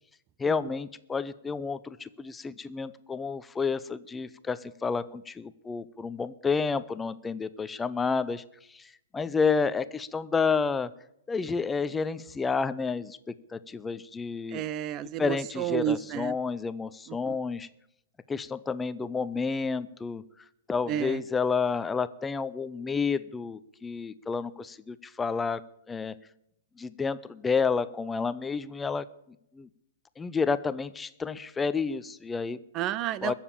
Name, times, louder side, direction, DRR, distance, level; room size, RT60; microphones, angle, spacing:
voice 1, 0.4-8.4 8.7-10.9 11.3-14.6 15.2-17.7 18.3-20.2 20.7-25.6 25.9-26.1 26.8-29.1 29.5-29.7 30.2-32.6 33.2-33.3, left 5 dB, 10° left, 15 dB, 0.6 m, -30 dB
voice 2, 14.5-16.4 17.1-17.4 20.9-21.2 32.7-33.3, right 11 dB, 30° right, 19 dB, 0.6 m, -31 dB
21.5 x 7.3 x 8.5 m, 0.79 s
figure-of-eight pair, 110°, 0 cm